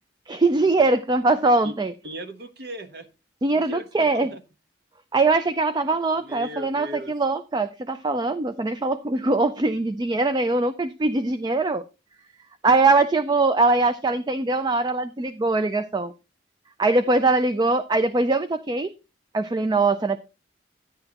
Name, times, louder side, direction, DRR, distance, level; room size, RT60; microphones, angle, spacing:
voice 1, 0.3-1.9 3.4-4.3 5.1-11.8 12.6-16.1 16.8-18.9 19.3-20.2, right 3 dB, 20° right, 12 dB, 0.4 m, -22 dB
voice 2, 2.0-3.1 3.5-4.4 6.2-7.1, equal, 60° right, 9 dB, 1.0 m, -37 dB
10.5 x 9.6 x 2.9 m, 0.28 s
head